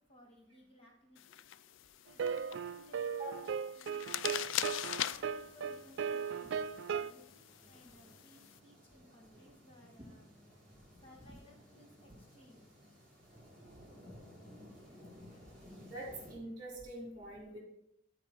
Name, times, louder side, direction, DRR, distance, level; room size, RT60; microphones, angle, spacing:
voice 1, 0.0-1.4 2.0-4.4 5.1-10.3 11.0-12.6, left 1 dB, 30° left, -2 dB, 1.9 m, -61 dB
sound 1, 1.2-8.6, left 12 dB, 70° left, 0.3 m, -43 dB
sound 2, 2.2-7.1, right 6 dB, 60° right, 0.3 m, -37 dB
voice 2, 3.2-3.6 15.8-17.6, right 1 dB, 20° right, -3 dB, 3.5 m, -45 dB
sound 3, 4.3-16.3, equal, 5° left, 2.9 m, -58 dB
13.0 x 4.7 x 4.4 m, 0.79 s
head